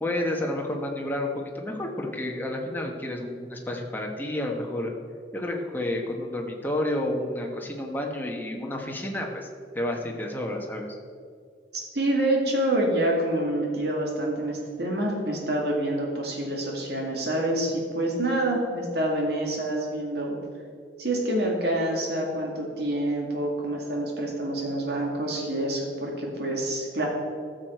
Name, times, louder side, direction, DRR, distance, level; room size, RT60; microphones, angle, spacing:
voice 1, 0.0-4.9 5.3-9.5 9.7-10.9, left 1 dB, 10° left, 0 dB, 1.1 m, -30 dB
voice 2, 11.7-20.4 21.0-27.1, right 1 dB, 65° right, -1 dB, 2.2 m, -27 dB
14.5 x 6.5 x 4.6 m, 2.2 s
head